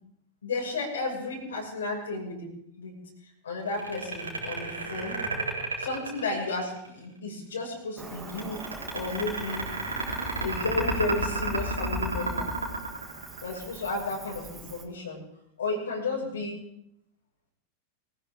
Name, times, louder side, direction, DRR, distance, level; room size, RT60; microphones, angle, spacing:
voice 1, 0.4-2.9 3.4-5.2 5.8-8.6 8.9-9.7 10.4-12.5 13.4-15.2 15.6-16.6, left 3 dB, 70° left, -2 dB, 6.0 m, -33 dB
sound 1, 3.7-6.9 8.3-13.8, right 2 dB, 75° right, 3.7 m, -31 dB
Cricket, 8.0-14.8, right 4 dB, 15° right, 2.3 m, -45 dB
23.5 x 15.5 x 3.7 m, 0.75 s
figure-of-eight pair, 90°, 0 cm